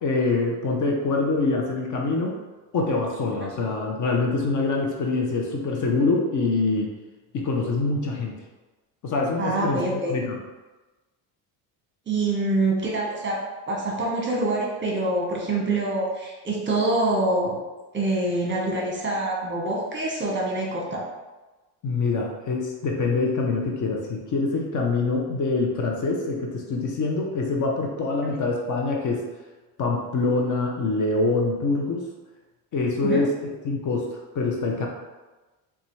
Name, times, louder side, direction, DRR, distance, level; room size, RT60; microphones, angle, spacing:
voice 1, 0.0-2.4 2.7-6.9 7.3-8.3 9.0-10.4 21.8-29.3 29.8-32.0 32.7-33.4 33.6-34.9, left 3 dB, 45° left, 0 dB, 0.6 m, -25 dB
voice 2, 9.4-10.1 12.1-13.4 13.7-17.6 17.9-21.0 33.0-33.2, right 2 dB, 25° right, -3 dB, 0.9 m, -25 dB
3.9 x 2.3 x 3.0 m, 1.2 s
supercardioid pair, 100°, 44 cm